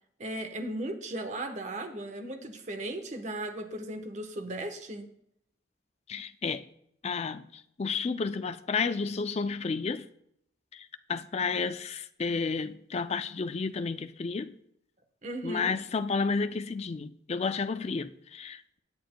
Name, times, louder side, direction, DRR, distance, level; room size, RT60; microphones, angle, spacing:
voice 1, 0.2-5.1 15.2-15.8, right 1 dB, 40° right, 1.0 m, -36 dB
voice 2, 6.1-6.6 7.0-10.1 10.7-14.5 15.4-18.8, left 4 dB, 35° left, 0.4 m, -31 dB
17.0 x 8.4 x 2.2 m
head